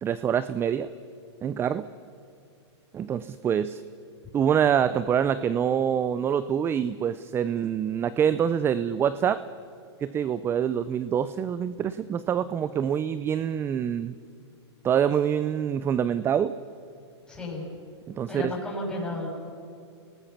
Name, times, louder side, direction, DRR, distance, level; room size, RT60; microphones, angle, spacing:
voice 1, 0.0-0.9 1.4-1.9 2.9-3.8 4.3-9.4 10.0-14.2 14.8-16.6 18.1-18.4, right 8 dB, 15° right, 15 dB, 0.4 m, -25 dB
voice 2, 17.3-17.7 18.3-19.3, left 1 dB, 5° left, -4 dB, 7.2 m, -32 dB
28.5 x 19.5 x 5.9 m, 2.6 s
hypercardioid pair, 140°, 15 cm